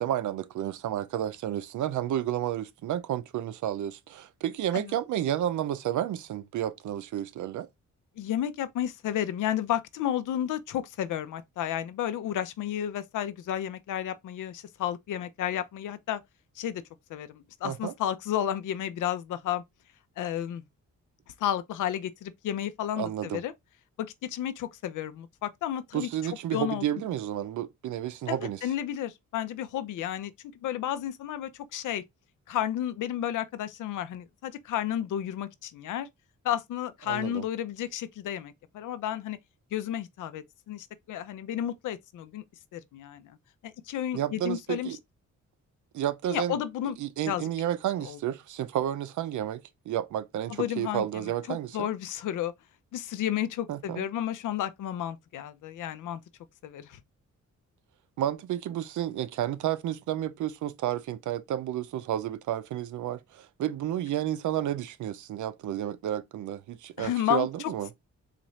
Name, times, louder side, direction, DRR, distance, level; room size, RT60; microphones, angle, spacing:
voice 1, 0.0-7.7 17.6-17.9 23.0-23.4 25.9-28.7 37.1-37.4 44.1-45.0 45.9-46.6 47.0-51.9 53.7-54.1 58.2-67.9, right 11 dB, 75° right, 0.5 m, -31 dB
voice 2, 8.2-16.2 16.6-16.8 17.1-19.6 20.2-20.6 21.4-23.5 24.0-26.8 28.3-30.3 30.6-32.0 32.5-36.1 36.4-39.4 39.7-42.4 42.7-43.4 43.6-45.0 46.3-47.0 47.3-47.5 48.0-48.2 50.5-52.5 52.9-56.2 56.6-57.0 67.0-67.7, left 11 dB, 85° left, 0.5 m, -32 dB
4.1 x 2.5 x 3.0 m
cardioid pair, 115°, 30 cm